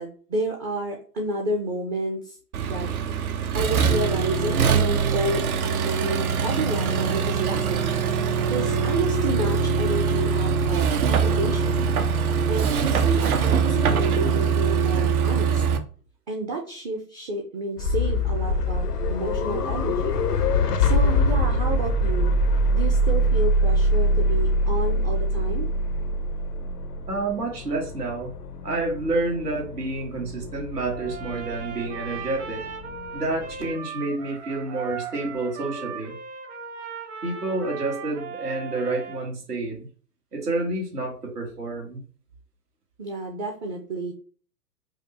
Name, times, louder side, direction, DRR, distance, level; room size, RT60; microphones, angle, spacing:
voice 1, 0.0-2.4 2.7-2.9 3.5-5.4 5.8-7.9 8.5-11.8 12.5-15.6 16.3-20.2 20.5-22.3 22.7-25.7 43.0-44.1, right 2 dB, 25° right, 2 dB, 0.5 m, -30 dB
Accelerating revving vroom, 2.5-15.8, right 6 dB, 65° right, 0.7 m, -23 dB
sound 1, 17.8-33.7, equal, 85° left, 0.6 m, -24 dB
voice 2, 27.1-28.3 28.6-32.6 33.1-36.2 37.2-39.9 40.3-42.0, right 2 dB, 80° right, 0 dB, 1.5 m, -29 dB
Trumpet, 30.9-39.2, right 6 dB, 45° right, 1.1 m, -38 dB
4.9 x 2.1 x 2.6 m, 0.41 s
figure-of-eight pair, 105°, 46 cm